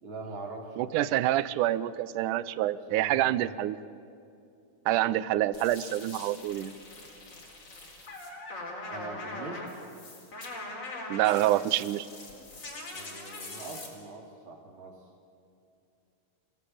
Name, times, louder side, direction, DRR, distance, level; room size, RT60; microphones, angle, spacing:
voice 1, 0.0-1.1 2.9-3.5 8.8-9.7 11.6-11.8 12.9-15.1, right 3 dB, 40° right, 1 dB, 3.7 m, -43 dB
voice 2, 0.8-3.8 4.9-6.7 11.1-12.1, right 14 dB, 80° right, 16 dB, 2.2 m, -27 dB
sound 1, 5.5-13.9, left 2 dB, 50° left, 5.0 m, -42 dB
27.0 x 17.5 x 8.8 m, 2.6 s
omnidirectional pair, 3.6 m